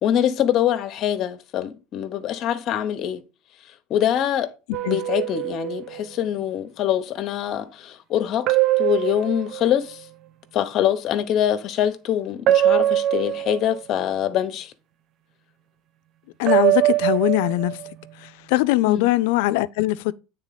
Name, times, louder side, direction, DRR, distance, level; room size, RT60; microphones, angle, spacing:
voice 1, 0.0-3.2 3.9-4.5 4.8-8.5 8.8-10.1 10.5-14.7 18.8-19.1, left 10 dB, 45° left, 0.9 m, -24 dB
sound 1, 4.7-6.0 8.5-10.0 12.5-14.0 16.5-17.9, right 14 dB, 45° right, 0.4 m, -22 dB
voice 2, 16.4-17.8 18.2-20.1, left 17 dB, 80° left, 0.4 m, -21 dB
8.9 x 3.8 x 4.0 m
cardioid pair, 145°, 0 cm